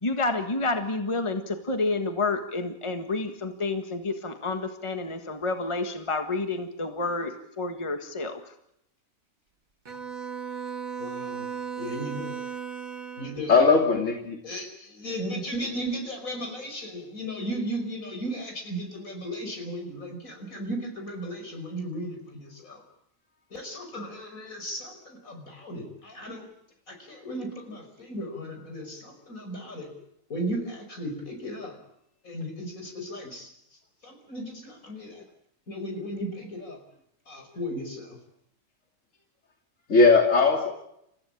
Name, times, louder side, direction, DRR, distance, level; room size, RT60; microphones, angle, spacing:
voice 1, 0.0-8.4, left 3 dB, 20° left, 7 dB, 1.7 m, -29 dB
Bowed string instrument, 9.9-13.5, right 7 dB, 80° right, 2.3 m, -36 dB
voice 2, 11.0-11.5 11.8-12.4 13.2-13.5 14.4-22.8 23.5-26.4 26.9-29.9 30.3-31.8 32.2-33.5 34.0-35.2 35.7-36.8 37.3-38.2, equal, 85° left, 4 dB, 5.9 m, -35 dB
voice 3, 13.5-14.4 39.9-40.7, left 4 dB, 65° left, 2 dB, 3.2 m, -19 dB
29.0 x 15.0 x 8.7 m, 0.78 s
omnidirectional pair, 1.4 m